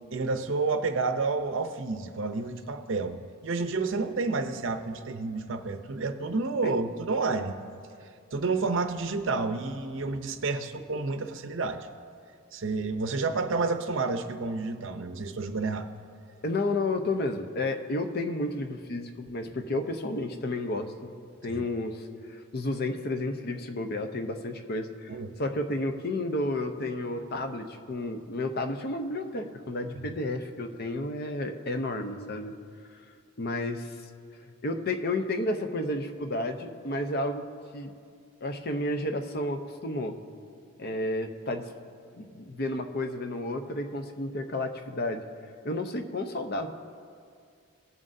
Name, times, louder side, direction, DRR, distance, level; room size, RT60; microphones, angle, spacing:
voice 1, 0.1-7.6 8.3-11.9 12.5-15.9 21.5-21.6 25.1-25.3, right 3 dB, 65° right, 8 dB, 0.6 m, -30 dB
voice 2, 16.4-21.1 21.4-22.0 22.3-25.1 25.4-32.5 33.4-33.9 34.6-37.4 37.7-37.9 38.4-40.1 40.8-41.6 42.2-45.2 45.6-46.7, left 2 dB, 45° left, 6 dB, 0.7 m, -31 dB
18.5 x 7.4 x 2.7 m, 2.3 s
head